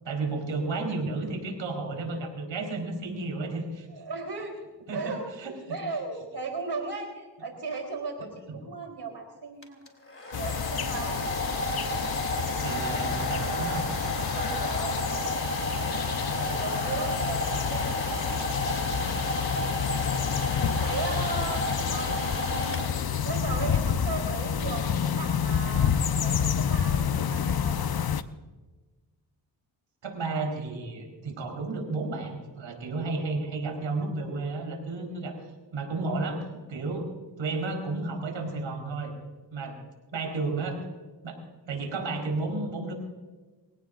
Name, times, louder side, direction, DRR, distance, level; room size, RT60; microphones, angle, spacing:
voice 1, 0.0-3.9 4.9-5.8 8.5-8.6 12.6-13.8 16.3-16.6 30.0-37.1 37.4-39.1 39.5-39.8 40.1-40.9 41.2-41.4 41.7-42.9, right 3 dB, 85° right, 2 dB, 4.5 m, -32 dB
voice 2, 3.9-4.5 4.9-9.8 10.3-11.2 12.5-12.7 14.3-15.3 16.5-17.9 19.1-20.2 20.8-28.0 35.1-35.2 39.6-39.8, right 3 dB, 60° right, 2 dB, 3.9 m, -37 dB
Domestic sounds home sounds, 9.6-23.3, left 1 dB, 30° left, 3.0 m, -32 dB
sound 1, 10.3-28.2, left 7 dB, 55° left, 0.9 m, -29 dB
25.5 x 17.0 x 2.6 m, 1.3 s
cardioid pair, 55°, 45 cm